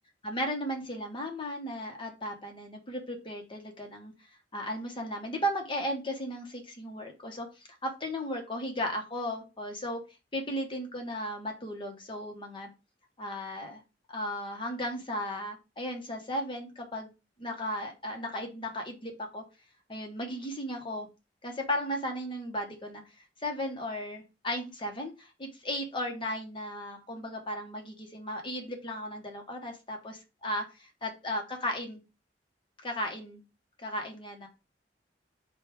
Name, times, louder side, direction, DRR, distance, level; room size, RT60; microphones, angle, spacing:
voice 1, 0.2-4.1 4.5-10.0 10.3-12.7 13.2-13.8 14.1-17.1 17.4-19.4 19.9-21.1 21.4-23.0 23.4-32.0 32.8-33.4 33.8-34.5, equal, 30° left, 2 dB, 0.8 m, -35 dB
5.1 x 2.3 x 4.5 m, 0.28 s
head